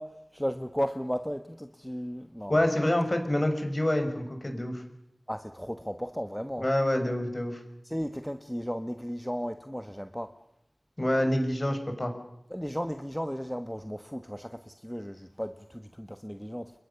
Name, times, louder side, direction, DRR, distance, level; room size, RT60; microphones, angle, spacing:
voice 1, 0.0-2.6 5.3-6.7 7.8-10.3 12.5-16.7, equal, 5° left, 8 dB, 1.2 m, -35 dB
voice 2, 2.5-4.8 6.6-7.6 11.0-12.1, left 1 dB, 35° left, 5 dB, 5.8 m, -27 dB
30.0 x 22.5 x 7.0 m, 0.79 s
wide cardioid pair, 60°, 0 cm